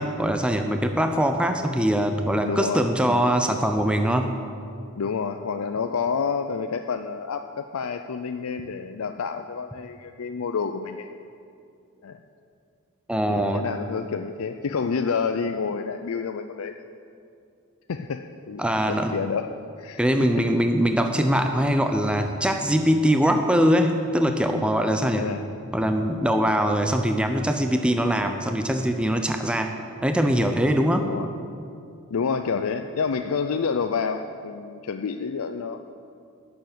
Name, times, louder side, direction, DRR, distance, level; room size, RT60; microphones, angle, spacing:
voice 1, 0.0-4.3 13.1-13.6 18.6-19.1 20.0-25.2 25.7-29.7 30.0-31.1, equal, 5° right, 5 dB, 0.5 m, -22 dB
voice 2, 2.4-3.3 5.0-11.1 12.0-12.2 13.3-16.7 17.9-20.5 25.1-25.5 31.0-31.3 32.1-35.8, left 5 dB, 75° left, 7 dB, 0.5 m, -29 dB
11.0 x 7.0 x 9.3 m, 2.5 s
head